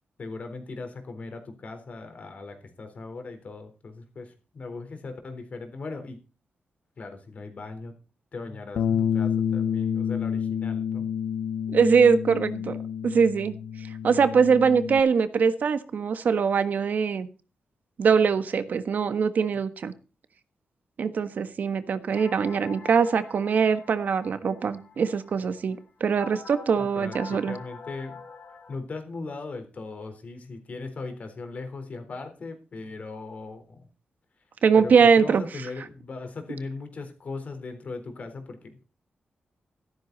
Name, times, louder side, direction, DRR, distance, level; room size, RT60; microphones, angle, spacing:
voice 1, 0.2-6.2 7.0-7.9 8.3-11.1 14.5-14.7 26.8-28.2 28.7-33.9 34.8-38.8, left 3 dB, 45° left, 7 dB, 3.9 m, -38 dB
Bass guitar, 8.8-15.0, left 8 dB, 85° left, 0.8 m, -29 dB
voice 2, 11.7-12.8 13.0-13.5 14.0-17.3 18.0-19.9 21.0-27.5 34.6-35.4, right 6 dB, 60° right, 11 dB, 1.4 m, -22 dB
sound 1, 22.1-28.8, left 4 dB, 65° left, 4.3 m, -45 dB
14.0 x 13.0 x 4.1 m, 0.33 s
wide cardioid pair, 140°, 3 cm